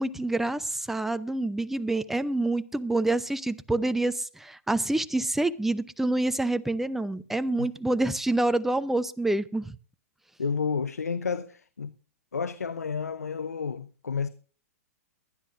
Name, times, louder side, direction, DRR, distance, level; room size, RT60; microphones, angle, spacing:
voice 1, 0.0-9.8, right 2 dB, 5° right, 0.6 m, -27 dB
voice 2, 10.4-11.9 12.3-14.3, left 5 dB, 90° left, 0.7 m, -31 dB
22.5 x 10.5 x 2.6 m
hypercardioid pair, 115°, 8 cm